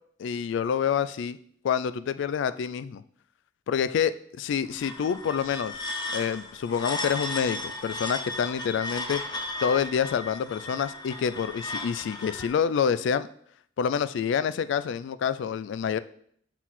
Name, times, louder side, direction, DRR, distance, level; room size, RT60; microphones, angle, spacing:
voice 1, 0.2-1.4 1.6-3.0 3.7-5.9 6.1-9.2 9.6-13.3 13.8-16.0, left 7 dB, 65° left, 14 dB, 0.3 m, -27 dB
sound 1, 4.6-12.5, left 2 dB, 20° left, 0.6 m, -35 dB
6.2 x 4.0 x 4.1 m, 0.63 s
head